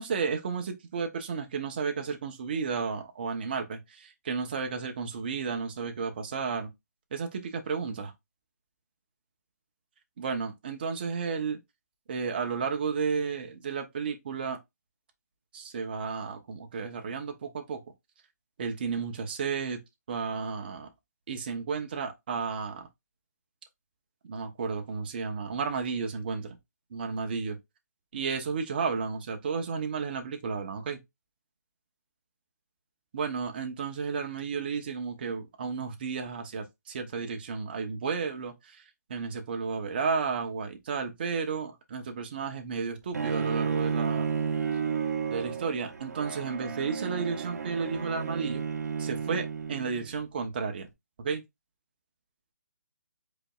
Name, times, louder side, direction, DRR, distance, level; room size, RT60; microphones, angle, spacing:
voice 1, 0.0-6.7 7.1-8.1 10.2-11.6 12.1-14.6 15.5-17.8 18.6-19.8 20.1-20.9 21.3-22.9 24.3-26.6 26.9-27.6 28.1-31.0 33.1-38.8 39.1-44.3 45.3-48.6 49.0-50.9 51.2-51.4, right 5 dB, 30° right, 0.9 m, -32 dB
Bowed string instrument, 43.1-50.2, right 6 dB, 65° right, 1.0 m, -32 dB
5.0 x 4.1 x 2.4 m
hypercardioid pair, 170°, 9 cm